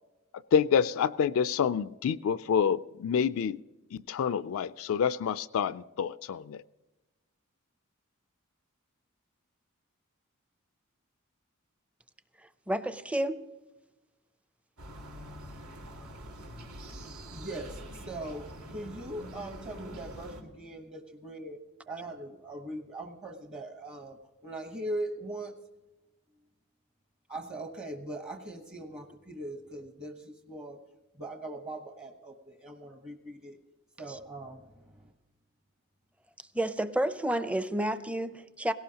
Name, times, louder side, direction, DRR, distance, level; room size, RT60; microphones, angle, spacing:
voice 1, 0.5-3.6 3.9-6.6, left 7 dB, 70° left, 0.3 m, -27 dB
voice 2, 12.4-13.5 34.1-34.2 36.5-38.7, right 1 dB, 5° right, 0.5 m, -31 dB
sound 1, 14.8-20.4, equal, 85° right, 2.4 m, -45 dB
voice 3, 17.3-21.6 21.9-24.2 24.4-25.5 27.3-30.8 31.2-33.6 34.0-35.1, right 1 dB, 30° right, 1.0 m, -40 dB
18.0 x 17.5 x 2.9 m
head